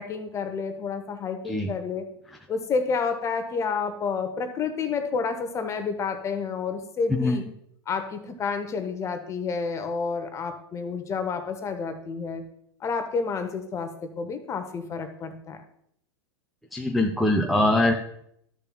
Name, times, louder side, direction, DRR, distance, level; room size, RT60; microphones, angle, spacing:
voice 1, 0.0-2.0 2.5-7.4 7.9-12.4 12.8-15.6, left 5 dB, 20° left, 8 dB, 0.9 m, -30 dB
voice 2, 16.7-17.9, left 1 dB, ahead, 1 dB, 0.6 m, -22 dB
13.0 x 6.7 x 2.3 m, 0.71 s
figure-of-eight pair, 95°, 14 cm